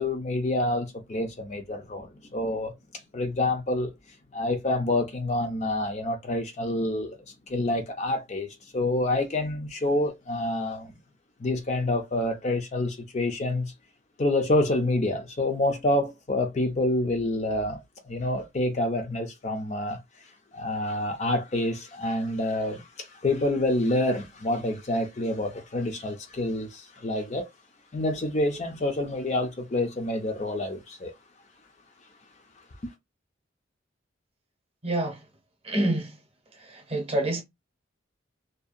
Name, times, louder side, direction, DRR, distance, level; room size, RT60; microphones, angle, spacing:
voice 1, 0.0-2.7 3.1-3.9 4.3-11.0 11.4-13.7 14.2-20.0 20.5-27.5 27.9-31.1 32.8-32.9, left 1 dB, 35° left, 0.4 m, -27 dB
voice 2, 34.8-35.2 35.6-36.2 36.6-37.4, right 1 dB, 30° right, 0.7 m, -27 dB
2.6 x 2.2 x 2.4 m
head